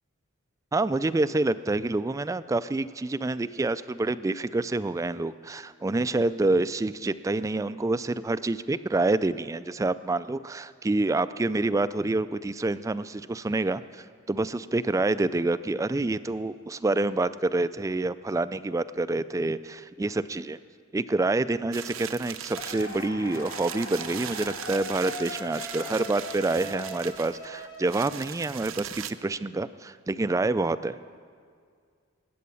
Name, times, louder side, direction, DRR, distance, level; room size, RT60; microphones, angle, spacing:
voice 1, 0.7-20.6 20.9-31.0, right 2 dB, 15° right, 14 dB, 0.3 m, -27 dB
sound 1, 21.7-29.1, right 10 dB, 75° right, 0.6 m, -39 dB
sound 2, 22.5-28.6, left 1 dB, 65° left, 2.7 m, -40 dB
20.5 x 8.6 x 6.9 m, 2.1 s
head